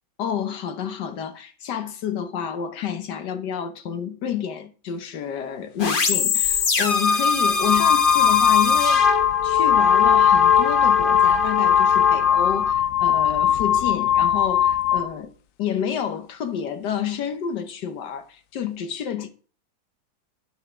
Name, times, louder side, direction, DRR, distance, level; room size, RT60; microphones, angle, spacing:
voice 1, 0.2-9.0 9.4-15.3 15.6-19.3, left 8 dB, 65° left, 1.5 m, -29 dB
sound 1, 5.8-12.7, left 4 dB, 40° left, 0.8 m, -23 dB
sound 2, 6.4-6.6 7.4-15.1, left 10 dB, 85° left, 0.7 m, -19 dB
9.0 x 7.2 x 3.6 m
omnidirectional pair, 2.1 m